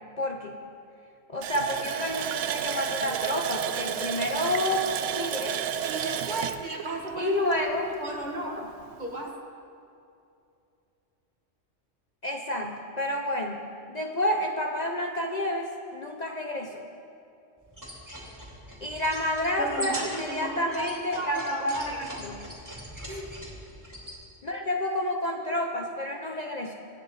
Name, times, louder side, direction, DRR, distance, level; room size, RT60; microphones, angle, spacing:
voice 1, 0.2-0.6 1.3-5.6 7.2-7.9 8.6-8.7 12.2-13.6 13.9-16.8 18.8-21.9 22.2-22.4 24.4-26.7, left 1 dB, 40° left, 2 dB, 0.8 m, -29 dB
Water tap faucet, 1.4-7.9 8.2-8.3 8.8-9.0, right 9 dB, 75° right, 0.9 m, -31 dB
voice 2, 5.9-7.7 8.0-8.6 9.0-9.3 19.6-22.2 23.1-23.3, right 2 dB, 35° right, 0 dB, 1.7 m, -35 dB
sound 1, 17.7-24.2, equal, 15° right, 2.8 m, -41 dB
24.0 x 9.6 x 4.2 m, 2.6 s
omnidirectional pair, 1.3 m